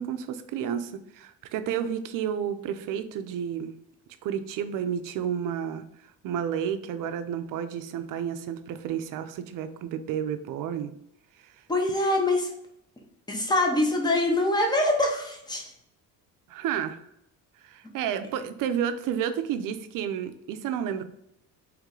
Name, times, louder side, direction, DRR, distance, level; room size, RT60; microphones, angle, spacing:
voice 1, 0.0-3.7 4.2-5.8 6.2-10.9 16.5-17.0 17.6-21.0, right 8 dB, 60° right, 10 dB, 0.5 m, -31 dB
voice 2, 11.7-12.5 13.3-15.7, left 1 dB, 10° left, 1 dB, 0.6 m, -24 dB
3.2 x 3.1 x 3.7 m, 0.75 s
cardioid pair, 160°, 36 cm